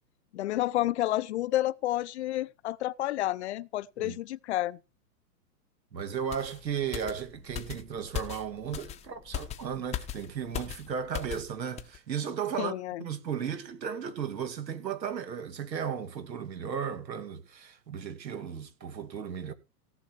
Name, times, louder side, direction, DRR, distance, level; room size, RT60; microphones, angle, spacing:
voice 1, 0.3-4.8 12.6-13.0, left 15 dB, 45° left, 0.5 m, -30 dB
voice 2, 5.9-12.7 13.0-19.5, right 7 dB, 85° right, 2.6 m, -35 dB
sound 1, 6.3-11.5 11.8-12.0, left 11 dB, 15° left, 0.7 m, -39 dB
17.5 x 7.0 x 4.6 m
hypercardioid pair, 135°, 50 cm